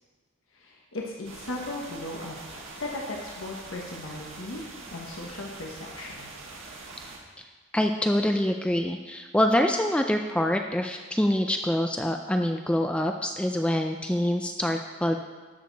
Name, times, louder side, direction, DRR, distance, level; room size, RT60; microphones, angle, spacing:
voice 1, 0.5-4.6 4.9-6.3, left 2 dB, 80° left, -1 dB, 1.2 m, -37 dB
sound 1, 1.2-7.2, right 3 dB, 70° right, 1.6 m, -43 dB
voice 2, 7.7-15.2, left 1 dB, 5° left, 4 dB, 0.3 m, -25 dB
13.0 x 6.6 x 4.0 m, 1.4 s
head